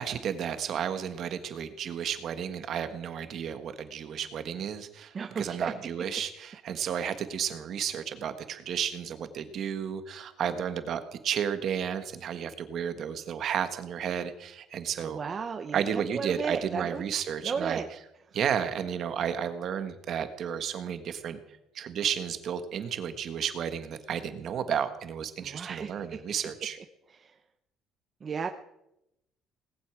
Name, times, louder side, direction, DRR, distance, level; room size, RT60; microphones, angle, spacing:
voice 1, 0.0-15.2 15.7-17.8 18.3-21.4 21.7-26.8, right 8 dB, 45° right, 10 dB, 1.4 m, -32 dB
voice 2, 5.1-5.7 15.1-17.0 17.4-17.9 25.4-26.2 27.2-27.3 28.2-28.5, right 6 dB, 25° right, 5 dB, 0.8 m, -34 dB
19.0 x 8.4 x 8.9 m, 0.85 s
cardioid pair, 170°, 0 cm